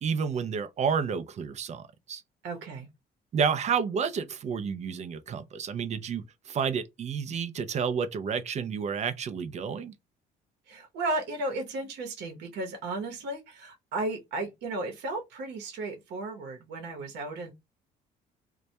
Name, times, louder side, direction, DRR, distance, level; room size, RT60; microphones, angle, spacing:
voice 1, 0.0-2.2 3.3-9.9, right 6 dB, 40° right, 0.4 m, -30 dB
voice 2, 2.4-2.9 10.7-17.5, right 2 dB, 80° right, 0.8 m, -34 dB
2.2 x 2.1 x 2.7 m
cardioid pair, 110°, 17 cm